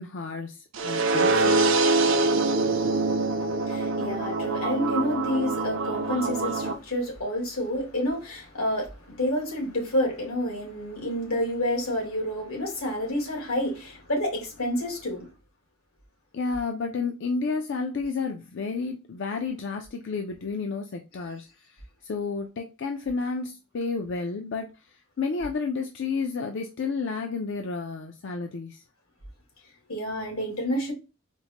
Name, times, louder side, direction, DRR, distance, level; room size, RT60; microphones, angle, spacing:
voice 1, 0.0-1.6 16.3-28.8, left 4 dB, 55° left, 0.4 m, -31 dB
sound 1, 0.7-6.7, right 3 dB, 60° right, 0.5 m, -24 dB
voice 2, 3.6-15.3 29.9-30.9, left 1 dB, 85° left, 1.7 m, -29 dB
4.4 x 2.1 x 2.8 m
head